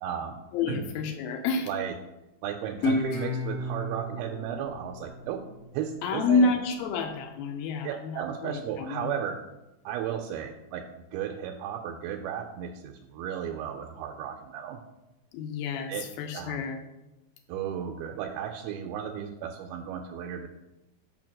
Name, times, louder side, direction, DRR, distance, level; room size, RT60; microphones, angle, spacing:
voice 1, 0.0-0.4 0.7-0.8 1.7-1.9 2.4-5.4 5.7-6.5 7.8-9.4 9.9-14.8 15.9-16.0 16.3-16.6 17.5-20.5, right 9 dB, 90° right, 3 dB, 2.5 m, -34 dB
voice 2, 0.5-1.7 6.0-9.1 15.3-16.8, left 4 dB, 80° left, 5 dB, 2.4 m, -29 dB
Guitar, 2.8-6.0, left 2 dB, 55° left, 1.9 m, -32 dB
5.7 x 4.6 x 6.2 m, 0.98 s
omnidirectional pair, 4.3 m